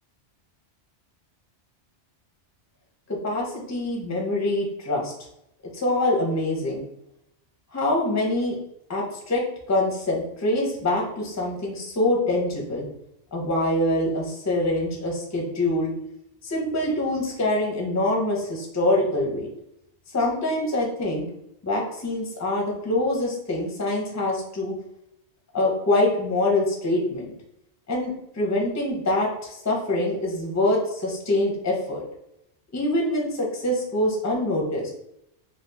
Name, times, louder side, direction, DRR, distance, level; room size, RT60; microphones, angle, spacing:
voice 1, 3.1-5.1 5.7-6.8 7.7-8.6 8.9-9.4 9.7-12.9 13.3-15.9 16.4-19.5 20.1-21.3 21.6-24.7 25.5-27.3 27.9-32.0 32.7-34.9, left 1 dB, 20° left, -2 dB, 0.5 m, -25 dB
2.9 x 2.3 x 3.4 m, 0.80 s
omnidirectional pair, 1.2 m